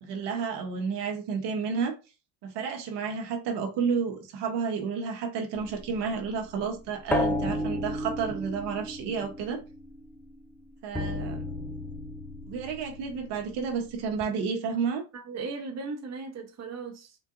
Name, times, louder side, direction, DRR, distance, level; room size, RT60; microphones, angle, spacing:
voice 1, 0.0-1.9 2.4-9.6 10.8-11.4 12.5-15.0, right 6 dB, 65° right, 1.0 m, -31 dB
sound 1, 5.5-10.4 10.9-14.2, left 1 dB, 5° left, 0.3 m, -34 dB
voice 2, 15.1-17.2, right 4 dB, 35° right, 1.0 m, -37 dB
3.8 x 2.5 x 2.5 m
supercardioid pair, 90°, 45 cm